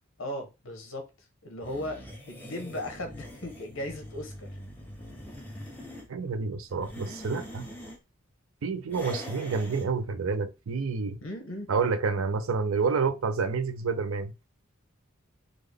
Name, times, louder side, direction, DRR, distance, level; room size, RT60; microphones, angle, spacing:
voice 1, 0.2-1.1 1.4-4.5 9.0-9.3 11.2-11.7, left 1 dB, 75° left, 1.0 m, -37 dB
sound 1, 1.6-6.1 6.7-8.0 8.9-9.9, left 1 dB, 10° left, 0.7 m, -43 dB
voice 2, 6.1-7.7 8.6-11.2 11.7-14.3, right 4 dB, 80° right, 0.5 m, -29 dB
3.7 x 2.1 x 3.3 m
head